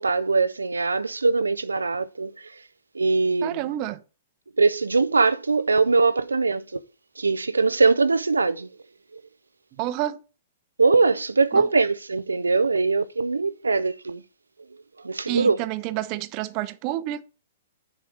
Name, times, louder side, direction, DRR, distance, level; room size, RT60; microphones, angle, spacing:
voice 1, 0.0-2.6 2.9-3.6 4.6-6.8 7.2-8.7 9.1-9.2 10.8-14.2 15.0-15.6, right 4 dB, 85° right, 0.4 m, -22 dB
voice 2, 3.4-4.0 9.8-10.2 11.5-11.7 15.3-17.2, right 14 dB, 40° right, 0.7 m, -29 dB
7.1 x 4.5 x 6.5 m
figure-of-eight pair, 115°, 0 cm